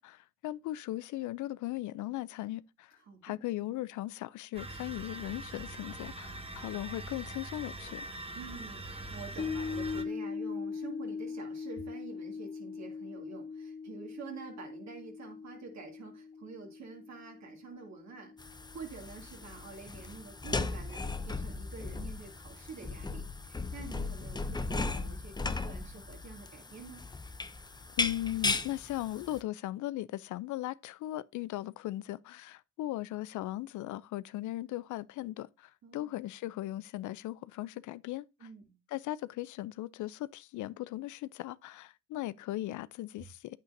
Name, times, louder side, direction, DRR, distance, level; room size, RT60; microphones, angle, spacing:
voice 1, 0.0-3.0 3.2-8.1 28.0-38.5 38.9-43.6, left 15 dB, 75° left, 0.5 m, -38 dB
voice 2, 3.0-3.4 8.4-27.0 35.8-36.2 38.4-38.8, right 5 dB, 60° right, 2.6 m, -48 dB
sound 1, 4.5-10.0, right 2 dB, 20° right, 1.2 m, -43 dB
sound 2, 9.4-19.8 20.1-20.2, left 5 dB, 40° left, 1.1 m, -41 dB
sound 3, 18.4-29.4, left 3 dB, 15° left, 0.6 m, -37 dB
9.0 x 8.2 x 2.6 m
cardioid pair, 90°, 30 cm